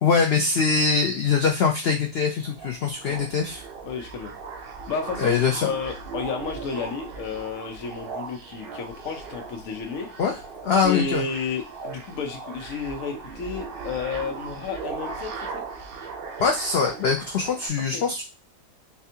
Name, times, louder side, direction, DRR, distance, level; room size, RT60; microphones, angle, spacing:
voice 1, 0.0-3.6 5.2-5.7 10.2-10.4 10.6-11.2 16.4-18.2, left 5 dB, 85° left, 2 dB, 0.5 m, -23 dB
sound 1, 2.4-17.7, right 5 dB, 90° right, 0.5 m, -38 dB
voice 2, 3.8-4.3 4.9-10.1 10.8-15.6 17.9-18.0, left 5 dB, 65° left, 3 dB, 1.1 m, -32 dB
4.2 x 2.3 x 2.7 m, 0.28 s
omnidirectional pair, 1.7 m